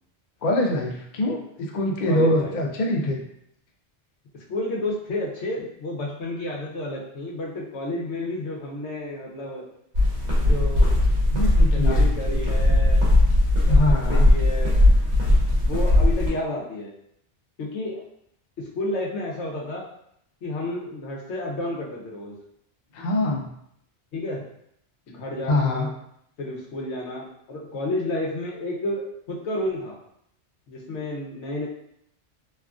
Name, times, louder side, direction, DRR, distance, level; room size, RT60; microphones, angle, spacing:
voice 1, 0.4-3.2 11.3-12.1 13.7-14.3 22.9-23.5 25.5-25.9, left 1 dB, 55° left, 0 dB, 0.5 m, -24 dB
voice 2, 2.1-2.5 4.5-9.6 10.4-11.0 11.7-13.0 13.7-14.8 15.6-16.9 17.6-18.0 18.6-19.8 20.4-22.4 24.1-24.4 25.1-25.9 26.4-30.0 30.7-31.7, left 1 dB, 75° left, -3 dB, 1.0 m, -31 dB
sound 1, 9.9-16.3, left 1 dB, 80° right, 1.3 m, -18 dB
3.0 x 2.4 x 2.3 m, 0.72 s
omnidirectional pair, 1.2 m